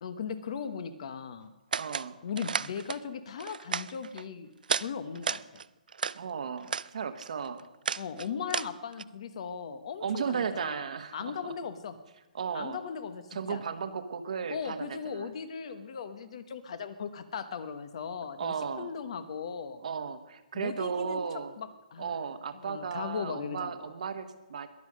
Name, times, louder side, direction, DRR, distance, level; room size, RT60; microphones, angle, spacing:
voice 1, 0.0-1.5 2.2-4.5 4.8-5.4 8.0-10.8 11.1-11.9 12.5-13.6 14.5-19.8 20.5-21.2 21.6-22.1 22.5-23.9, left 6 dB, 45° left, 12 dB, 1.1 m, -38 dB
sound 1, 1.7-2.1 2.4-3.0 3.4-4.2 4.6-4.9 5.1-6.2 6.6-6.9 7.2-9.0, right 6 dB, 80° right, 0.4 m, -33 dB
voice 2, 1.8-2.1 6.1-7.6 10.0-11.5 12.3-12.8 13.3-15.3 18.4-18.9 19.8-21.5 22.0-24.7, right 6 dB, 55° right, 9 dB, 1.2 m, -35 dB
21.5 x 7.4 x 6.3 m, 1.0 s
hypercardioid pair, 165°, 5 cm